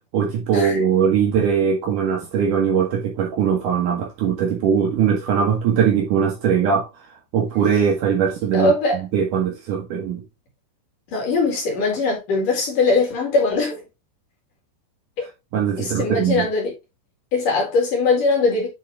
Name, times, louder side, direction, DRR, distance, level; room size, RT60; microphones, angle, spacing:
voice 1, 0.1-7.1 7.3-10.2 15.5-16.5, right 7 dB, 80° right, 1.8 m, -21 dB
voice 2, 8.5-9.0 11.1-13.8 15.8-16.7 17.3-18.7, left 3 dB, 50° left, 3.4 m, -20 dB
8.5 x 4.4 x 3.5 m
omnidirectional pair, 5.5 m